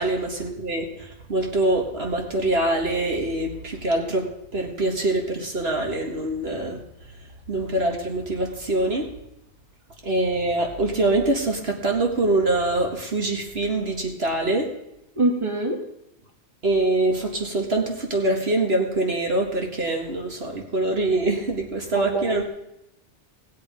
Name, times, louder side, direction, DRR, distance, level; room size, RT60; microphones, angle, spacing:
voice 1, 0.0-4.3 4.5-6.8 7.5-9.1 10.0-14.7 16.6-22.4, right 2 dB, 60° right, 2 dB, 2.1 m, -24 dB
voice 2, 15.2-15.8 21.9-22.4, right 2 dB, 25° right, 2 dB, 1.8 m, -24 dB
19.0 x 8.0 x 5.2 m, 0.86 s
omnidirectional pair, 1.2 m